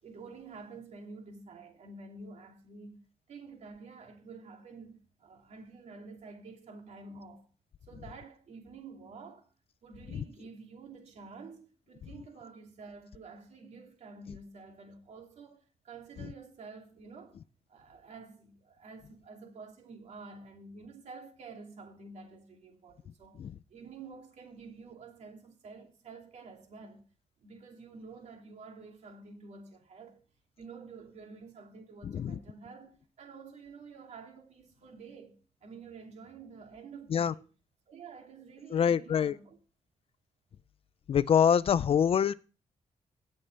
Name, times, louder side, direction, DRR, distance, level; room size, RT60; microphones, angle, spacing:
voice 1, 0.0-3.0 3.3-7.5 7.9-9.5 9.8-17.4 17.7-23.4 23.7-27.0 27.4-30.2 30.6-35.4 35.6-37.5 37.9-39.6, right 4 dB, 65° right, 2.7 m, -49 dB
voice 2, 32.0-32.4 37.1-37.3 38.7-39.4 41.1-42.3, left 8 dB, 50° left, 0.4 m, -25 dB
17.5 x 6.6 x 3.3 m
wide cardioid pair, 135°, 13 cm